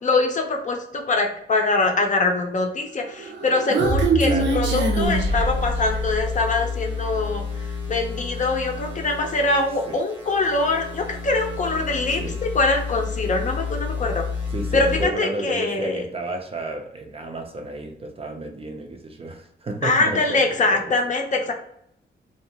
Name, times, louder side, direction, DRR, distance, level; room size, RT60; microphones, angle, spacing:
voice 1, 0.0-7.4 7.9-14.2 14.7-16.0 19.8-21.5, left 3 dB, 45° left, 3 dB, 0.5 m, -23 dB
Human voice, 3.1-6.1, right 2 dB, 85° right, 0.6 m, -23 dB
voice 2, 4.2-4.6 9.9-10.0 12.2-12.4 14.5-20.9, right 2 dB, 30° right, 4 dB, 0.4 m, -32 dB
sound 1, 5.0-15.0, left 5 dB, 10° right, 0.8 m, -30 dB
2.7 x 2.2 x 2.8 m, 0.71 s
wide cardioid pair, 120°, 18 cm